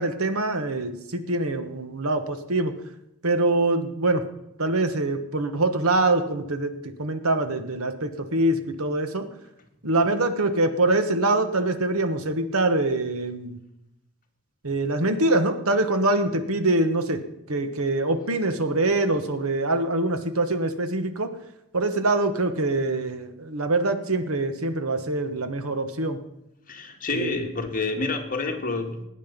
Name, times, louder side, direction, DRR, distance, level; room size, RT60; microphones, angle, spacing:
voice 1, 0.0-2.7 3.2-4.2 4.6-6.7 7.0-9.3 9.8-13.6 14.6-17.2 17.5-21.3 21.7-26.2 27.1-27.4, right 2 dB, 70° right, 9 dB, 1.3 m, -24 dB
voice 2, 26.7-29.0, left 3 dB, 40° left, 3 dB, 1.8 m, -28 dB
19.0 x 9.1 x 5.3 m, 0.86 s
head